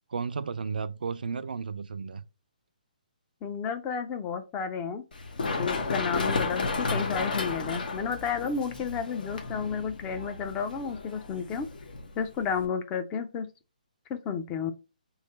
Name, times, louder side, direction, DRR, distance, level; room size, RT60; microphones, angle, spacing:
voice 1, 0.1-2.2, right 5 dB, 75° right, 0.4 m, -33 dB
voice 2, 3.4-5.0 5.6-11.7 12.2-13.5 14.1-14.7, left 6 dB, 15° left, 0.4 m, -32 dB
Run, 5.1-12.6, left 3 dB, 75° left, 1.0 m, -33 dB
3.2 x 2.8 x 4.3 m
hypercardioid pair, 155°, 5 cm